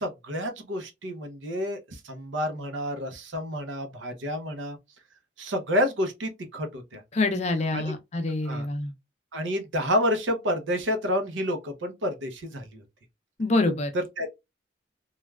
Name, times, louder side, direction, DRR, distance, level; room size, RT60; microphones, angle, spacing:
voice 1, 0.0-4.8 5.4-7.0 7.7-7.9 8.5-8.7 9.3-12.8 13.9-14.3, equal, 85° right, 0.7 m, -29 dB
voice 2, 7.1-8.9 13.4-13.9, left 2 dB, 35° left, 0.5 m, -26 dB
3.2 x 2.3 x 2.2 m
head